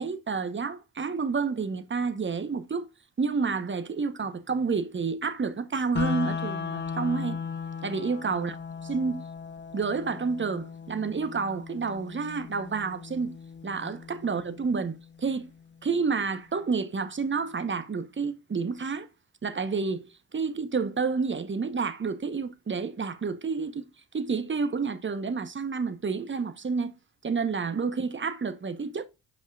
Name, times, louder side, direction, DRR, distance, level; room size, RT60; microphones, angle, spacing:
voice 1, 0.0-2.9 3.2-7.4 7.8-8.6 8.8-9.3 9.7-13.4 13.6-15.5 15.8-19.1 19.4-23.9 24.1-26.9 27.2-29.0, right 5 dB, 25° right, 1.0 m, -29 dB
sound 1, 6.0-15.9, left 6 dB, 25° left, 0.6 m, -37 dB
7.5 x 5.4 x 2.4 m
hypercardioid pair, 45°, 47 cm